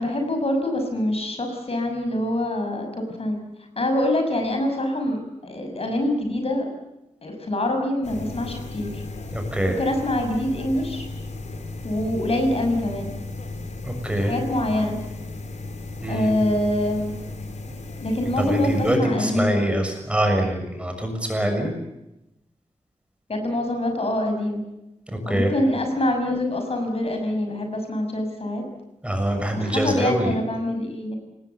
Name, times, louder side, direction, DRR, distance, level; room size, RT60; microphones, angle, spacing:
voice 1, 0.0-3.4 3.8-6.7 7.2-9.0 9.8-11.0 11.8-13.1 14.2-15.0 16.1-17.1 18.0-19.5 23.3-24.6 25.2-28.6 29.5-31.2, left 1 dB, 55° left, 4 dB, 6.4 m, -25 dB
sound 1, 8.0-19.0, left 2 dB, 70° left, 3.8 m, -35 dB
voice 2, 9.3-9.8 13.8-14.3 16.0-16.3 18.4-21.7 25.3-25.5 29.0-30.3, right 1 dB, 10° right, 4 dB, 6.5 m, -24 dB
27.0 x 20.0 x 8.4 m, 0.91 s
wide cardioid pair, 120°, 12 cm